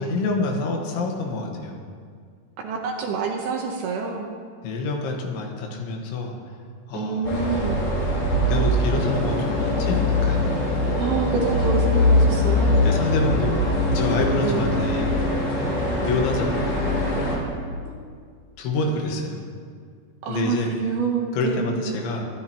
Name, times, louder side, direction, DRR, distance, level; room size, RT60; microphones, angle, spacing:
voice 1, 0.0-1.8 4.6-6.4 6.9-7.3 8.5-10.5 12.8-15.1 16.0-16.8 18.6-19.4 20.3-20.7 21.3-22.3, left 3 dB, 80° left, 1 dB, 3.8 m, -27 dB
voice 2, 2.6-4.3 6.9-7.8 10.8-12.9 14.4-14.7 17.8-17.9 20.2-21.8, right 5 dB, 70° right, 1 dB, 2.5 m, -27 dB
sound 1, 7.2-17.4, left 1 dB, 50° left, 4.1 m, -22 dB
23.0 x 13.5 x 3.0 m, 2.1 s
omnidirectional pair, 5.3 m